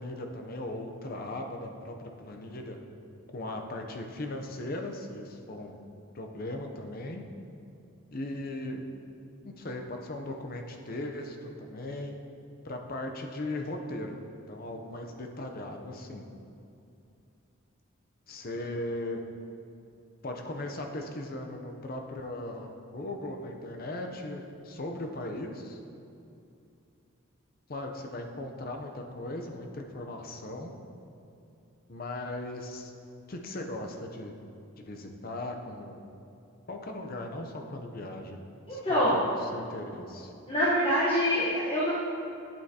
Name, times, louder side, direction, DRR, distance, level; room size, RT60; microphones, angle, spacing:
voice 1, 0.0-2.8 3.3-5.8 6.1-7.2 8.1-8.8 9.4-12.1 12.6-14.2 14.5-16.2 18.3-19.2 20.2-25.8 27.7-30.7 31.9-32.9 33.3-34.4 34.8-36.0 36.7-38.4 38.7-40.3, left 1 dB, 40° left, 3 dB, 0.6 m, -38 dB
voice 2, 38.7-39.2 40.5-41.9, equal, 25° left, -7 dB, 1.0 m, -25 dB
8.9 x 7.9 x 2.8 m, 2.7 s
head